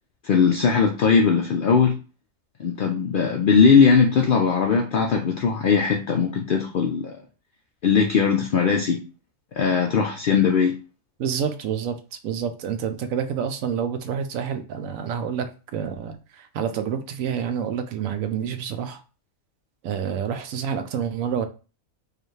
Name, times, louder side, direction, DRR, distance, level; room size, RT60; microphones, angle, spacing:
voice 1, 0.2-2.0 2.6-7.2 7.8-9.0 9.6-10.8, left 6 dB, 70° left, 0.5 m, -19 dB
voice 2, 11.2-12.0 12.2-19.0 19.8-21.4, right 7 dB, 75° right, 1.0 m, -28 dB
4.9 x 2.4 x 3.1 m
omnidirectional pair, 1.4 m